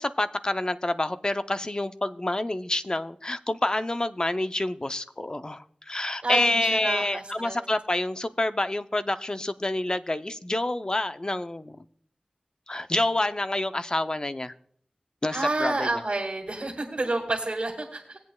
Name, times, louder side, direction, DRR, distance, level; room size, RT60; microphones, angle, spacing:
voice 1, 0.0-11.8 12.7-14.5 15.2-16.0, left 1 dB, 30° left, 0.5 m, -28 dB
voice 2, 6.2-7.6 15.3-18.2, right 2 dB, 55° right, 1.8 m, -29 dB
19.0 x 8.3 x 2.2 m
wide cardioid pair, 55°, 2 cm